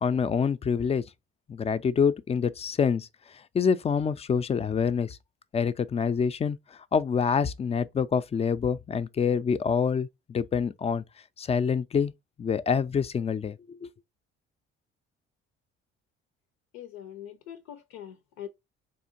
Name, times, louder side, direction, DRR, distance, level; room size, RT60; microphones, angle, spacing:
voice 1, 0.0-1.0 1.5-3.1 3.5-5.2 5.5-6.6 6.9-11.0 11.4-12.1 12.4-13.9, left 6 dB, 20° left, 0.4 m, -26 dB
voice 2, 16.7-18.5, left 10 dB, 75° left, 0.5 m, -43 dB
4.2 x 2.8 x 2.5 m
hypercardioid pair, 50°, 31 cm